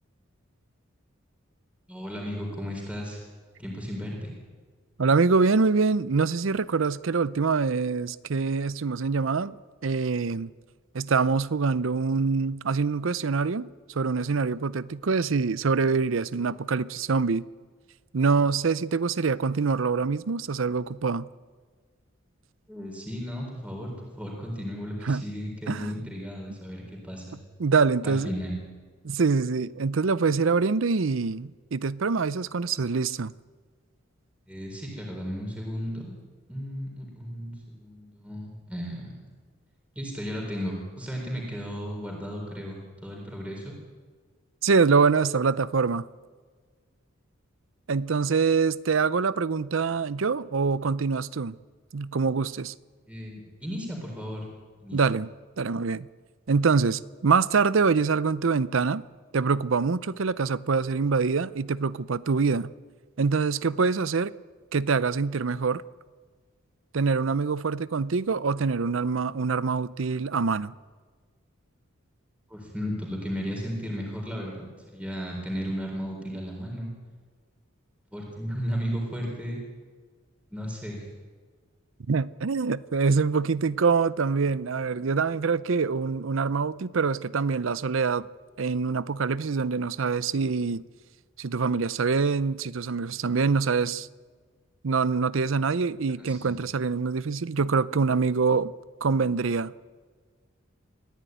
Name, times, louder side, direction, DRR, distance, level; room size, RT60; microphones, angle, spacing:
voice 1, 1.9-3.2 3.6-4.3 22.7-27.4 28.0-28.5 34.5-36.1 36.5-39.1 40.0-43.7 53.1-54.5 54.8-55.0 72.5-76.9 78.1-79.6 80.5-81.1 96.1-96.6, equal, 5° right, 3.9 m, -34 dB
voice 2, 5.0-9.6 9.8-10.5 10.9-13.7 13.9-17.5 18.1-21.3 25.0-25.2 25.7-26.0 27.6-28.3 29.0-33.3 44.6-46.1 47.9-51.6 51.9-52.7 54.9-55.3 55.6-56.1 56.5-59.0 59.3-62.7 63.2-64.3 64.7-65.8 66.9-70.7 82.1-88.3 88.6-90.8 91.4-94.1 94.8-98.7 99.0-99.7, right 4 dB, 70° right, 0.6 m, -25 dB
23.5 x 15.5 x 9.3 m
head